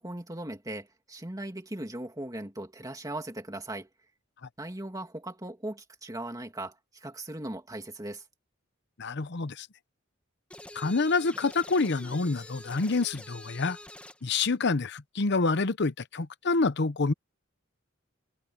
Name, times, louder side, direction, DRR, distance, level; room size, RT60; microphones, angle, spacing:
voice 1, 0.0-3.9 4.6-8.2, right 1 dB, 20° right, 2.3 m, -38 dB
voice 2, 9.0-9.7 10.7-13.8 14.2-17.1, left 3 dB, 60° left, 0.8 m, -27 dB
sound 1, 10.5-14.3, left 1 dB, 5° left, 1.8 m, -46 dB
head